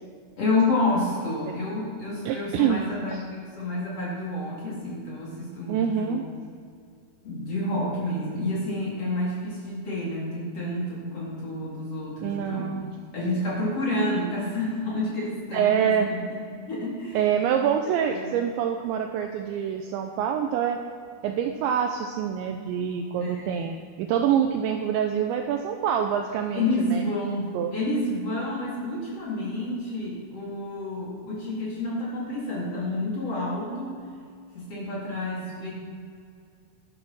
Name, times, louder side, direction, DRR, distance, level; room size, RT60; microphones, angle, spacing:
voice 1, 0.4-6.2 7.2-12.7 13.1-17.2 17.8-18.3 23.2-23.7 26.5-34.0 34.5-35.7, left 2 dB, 30° left, -7 dB, 4.3 m, -29 dB
voice 2, 2.3-2.8 3.1-3.2 5.7-6.3 12.2-12.9 15.5-16.1 17.1-20.8 21.2-27.0 27.5-27.7, right 8 dB, 85° right, 4 dB, 2.6 m, -26 dB
11.5 x 11.5 x 6.2 m, 2.3 s
omnidirectional pair, 5.9 m